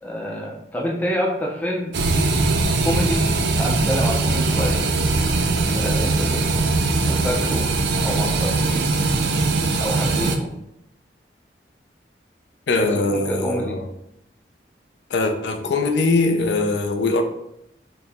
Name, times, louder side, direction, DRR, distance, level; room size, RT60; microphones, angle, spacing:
voice 1, 0.0-1.9 2.8-3.3 3.6-4.9 5.7-6.7 7.0-7.7 8.0-8.8 9.8-10.5 12.8-13.8, equal, 10° left, 0.4 m, -27 dB
sound 1, 1.9-10.4, right 3 dB, 65° right, 0.4 m, -21 dB
voice 2, 12.7-13.8 15.1-17.2, left 3 dB, 70° left, 0.4 m, -21 dB
4.4 x 2.1 x 3.4 m
head